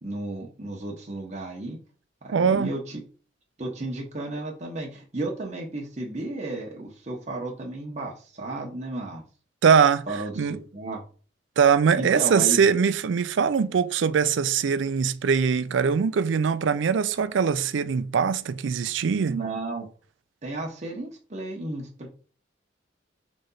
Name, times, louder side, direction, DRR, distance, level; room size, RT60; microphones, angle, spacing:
voice 1, 0.0-1.8 2.2-3.0 3.6-9.2 10.1-11.0 12.0-12.6 19.3-19.9 20.4-22.1, right 2 dB, 35° right, 0.9 m, -33 dB
voice 2, 2.3-2.8 9.6-10.6 11.6-19.4, right 6 dB, 75° right, 0.4 m, -22 dB
3.9 x 3.3 x 3.9 m
head